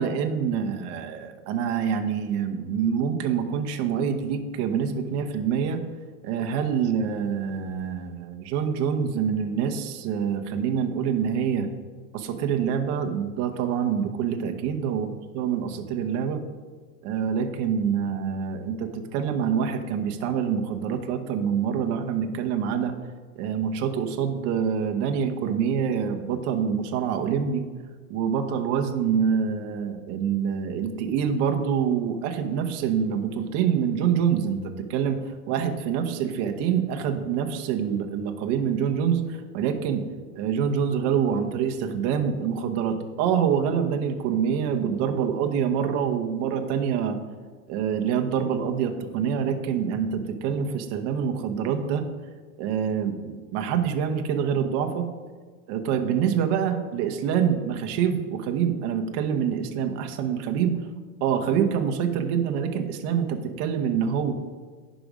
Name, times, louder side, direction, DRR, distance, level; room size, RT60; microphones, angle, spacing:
voice 1, 0.0-5.8 6.2-11.7 12.1-15.1 15.3-16.4 17.0-22.9 23.4-27.6 28.1-40.1 40.3-47.2 47.7-52.0 52.6-55.1 55.7-60.8 61.2-64.3, right 7 dB, 35° right, 6 dB, 0.8 m, -26 dB
10.5 x 5.0 x 5.2 m, 1.5 s
supercardioid pair, 150°, 45 cm